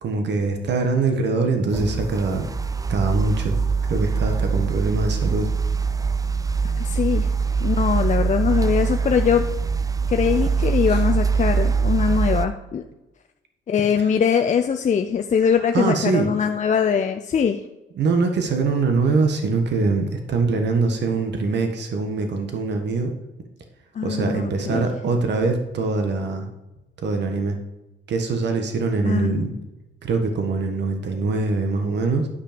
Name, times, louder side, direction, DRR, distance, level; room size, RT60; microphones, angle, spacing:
voice 1, 0.0-2.5 2.9-3.6 3.9-5.5 10.9-11.0 15.7-16.3 17.9-23.1 24.0-26.5 27.0-27.6 28.1-29.5 30.0-32.3, right 3 dB, 60° right, 5 dB, 1.5 m, -23 dB
sound 1, 1.7-12.5, right 5 dB, 15° right, 0.5 m, -23 dB
voice 2, 6.8-7.3 7.6-9.4 10.1-12.8 13.7-17.6 24.0-24.9 29.0-29.7, left 7 dB, 35° left, 5 dB, 0.5 m, -22 dB
10.0 x 5.5 x 5.1 m, 0.99 s
cardioid pair, 90°, 20 cm